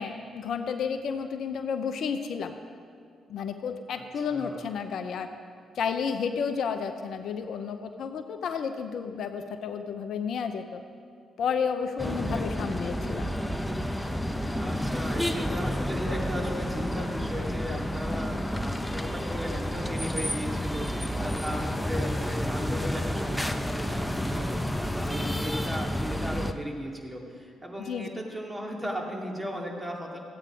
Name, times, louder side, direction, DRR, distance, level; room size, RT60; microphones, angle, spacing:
voice 1, 0.0-2.6 3.3-5.3 5.8-10.8 11.4-13.3 27.8-28.1, left 6 dB, 65° left, 8 dB, 0.6 m, -31 dB
voice 2, 4.3-4.6 12.0-12.5 14.6-30.2, equal, 15° right, -1 dB, 2.5 m, -36 dB
sound 1, 12.0-26.5, equal, 5° left, 0.8 m, -30 dB
14.5 x 8.7 x 5.0 m, 2.2 s
hypercardioid pair, 50°, 0 cm